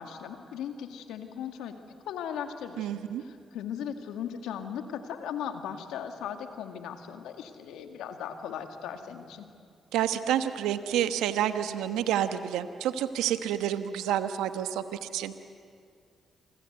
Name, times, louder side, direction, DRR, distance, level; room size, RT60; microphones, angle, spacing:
voice 1, 0.0-1.8 2.1-2.9 3.2-9.5, left 8 dB, 80° left, 6 dB, 2.1 m, -38 dB
voice 2, 2.8-3.2 9.9-15.3, right 10 dB, 85° right, 10 dB, 1.2 m, -29 dB
28.5 x 24.5 x 8.1 m, 2.3 s
hypercardioid pair, 45°, 0 cm